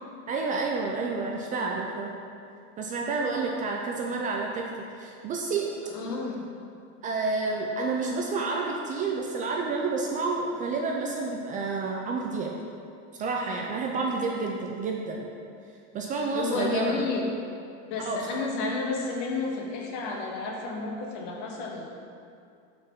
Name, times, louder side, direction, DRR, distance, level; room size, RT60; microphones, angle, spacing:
voice 1, 0.3-2.1 2.8-4.7 5.0-5.7 7.0-12.5 13.2-15.3 15.9-17.0 18.0-18.4, right 4 dB, 25° right, 0 dB, 0.4 m, -29 dB
voice 2, 5.8-6.4 16.3-17.3 17.9-21.9, left 3 dB, 55° left, 0 dB, 1.0 m, -31 dB
6.0 x 5.1 x 3.6 m, 2.4 s
supercardioid pair, 150°, 32 cm